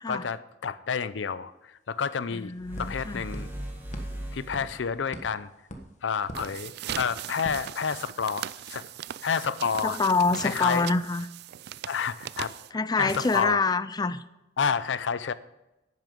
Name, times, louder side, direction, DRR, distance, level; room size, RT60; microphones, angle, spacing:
voice 1, 0.1-2.5 2.8-3.5 4.3-5.5 6.0-8.8 9.2-10.0 10.4-10.9 11.9-12.6 13.0-13.6 14.6-15.3, left 6 dB, 80° left, 15 dB, 0.5 m, -29 dB
sound 1, 1.6-1.7 2.0-8.4, equal, 40° left, 1.2 m, -46 dB
voice 2, 2.3-3.3 9.8-11.3 12.7-14.2, left 3 dB, 20° left, 14 dB, 0.4 m, -26 dB
sound 2, 2.6-5.0, right 1 dB, 10° right, 1.7 m, -38 dB
sound 3, 6.2-13.7, right 11 dB, 60° right, 0.4 m, -39 dB
11.0 x 9.2 x 5.3 m, 0.96 s
head